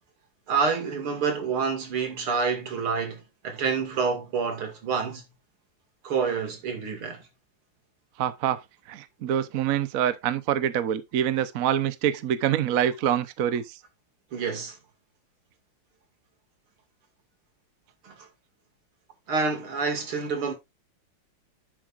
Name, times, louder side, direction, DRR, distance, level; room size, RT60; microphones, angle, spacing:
voice 1, 0.5-5.2 6.0-7.2 14.3-14.8 18.0-18.3 19.3-20.5, right 5 dB, 80° right, 3.2 m, -28 dB
voice 2, 8.2-8.6 8.9-13.8, right 10 dB, 60° right, 0.9 m, -25 dB
11.0 x 7.6 x 2.5 m
omnidirectional pair, 2.3 m